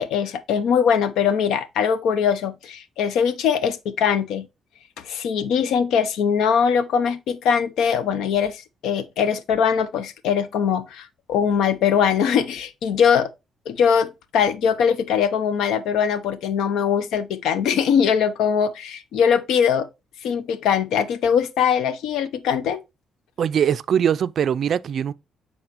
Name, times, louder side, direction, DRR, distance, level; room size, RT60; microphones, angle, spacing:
voice 1, 0.0-4.5 5.0-13.3 13.7-19.9 20.2-22.8, left 7 dB, 85° left, 0.6 m, -21 dB
voice 2, 23.4-25.1, right 8 dB, 60° right, 0.3 m, -21 dB
7.8 x 4.2 x 2.9 m
cardioid pair, 90°, 0 cm